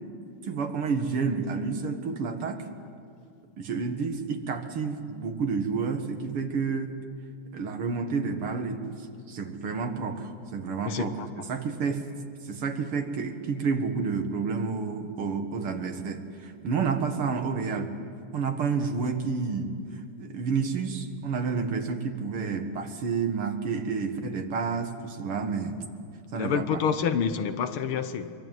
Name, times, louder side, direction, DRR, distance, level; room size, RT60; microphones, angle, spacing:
voice 1, 0.4-2.6 3.6-6.9 7.5-9.0 9.3-11.2 11.5-12.1 12.4-17.9 18.3-25.8 26.3-26.8, right 5 dB, 80° right, 2.7 m, -30 dB
voice 2, 10.9-11.3 26.3-28.4, left 7 dB, 75° left, 2.0 m, -28 dB
25.5 x 23.5 x 9.3 m
omnidirectional pair, 2.4 m